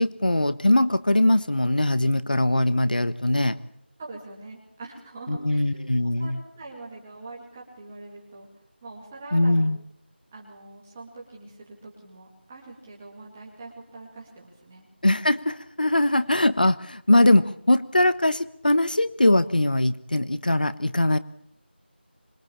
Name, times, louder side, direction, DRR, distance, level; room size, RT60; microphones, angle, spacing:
voice 1, 0.0-3.6 5.3-6.4 9.3-9.8 15.0-21.2, left 1 dB, 50° left, 15 dB, 1.1 m, -21 dB
voice 2, 4.0-5.8 6.0-8.5 8.8-9.7 10.3-14.8 15.9-16.2, right 2 dB, 5° right, -3 dB, 2.2 m, -43 dB
26.0 x 22.0 x 8.7 m, 0.65 s
figure-of-eight pair, 180°, 6 cm